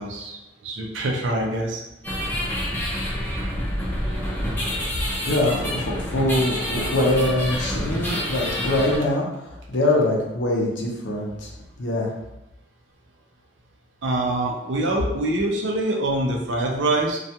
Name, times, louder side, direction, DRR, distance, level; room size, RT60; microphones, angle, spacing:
voice 1, 0.0-1.8 14.0-17.2, right 2 dB, 80° right, 1 dB, 0.5 m, -25 dB
sound 1, 2.0-9.0, equal, 10° left, 0.5 m, -27 dB
voice 2, 5.3-11.5 11.8-12.1, left 1 dB, 75° left, -2 dB, 0.6 m, -23 dB
2.3 x 2.2 x 2.7 m, 0.92 s
head